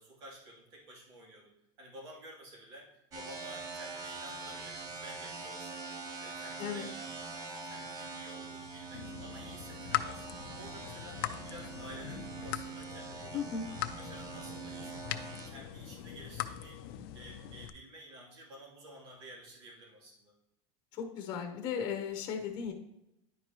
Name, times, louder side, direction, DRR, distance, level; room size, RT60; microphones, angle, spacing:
voice 1, 0.0-20.3, right 1 dB, 85° right, -3 dB, 2.9 m, -52 dB
sound 1, 3.1-15.5, right 4 dB, 25° right, 0.7 m, -44 dB
sound 2, 8.9-17.7, left 13 dB, 65° left, 0.5 m, -41 dB
voice 2, 13.3-13.7 20.9-22.7, left 7 dB, 35° left, 3 dB, 0.8 m, -36 dB
10.5 x 4.8 x 2.9 m, 0.85 s
supercardioid pair, 170°, 13 cm